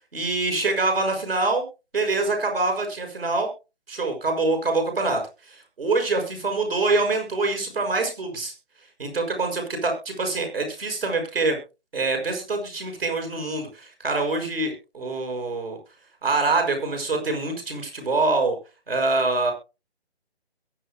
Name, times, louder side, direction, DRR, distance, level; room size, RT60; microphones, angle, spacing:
voice 1, 0.1-1.6 1.9-3.5 3.9-5.2 5.5-8.5 9.0-11.6 11.9-15.8 16.2-18.6 18.9-19.5, right 3 dB, 60° right, 4 dB, 6.0 m, -25 dB
22.0 x 9.6 x 2.3 m, 0.29 s
figure-of-eight pair, 155°, 34 cm